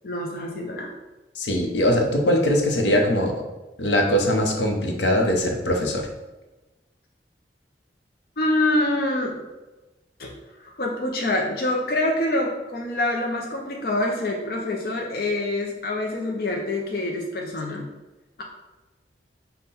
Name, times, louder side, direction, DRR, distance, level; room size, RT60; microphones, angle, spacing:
voice 1, 0.0-0.9 8.4-9.4 10.2-10.3 10.6-17.9, left 1 dB, 55° left, 0 dB, 0.5 m, -26 dB
voice 2, 1.4-3.3 3.8-6.1, equal, 85° left, 1 dB, 0.8 m, -21 dB
5.4 x 2.2 x 4.1 m, 1.1 s
head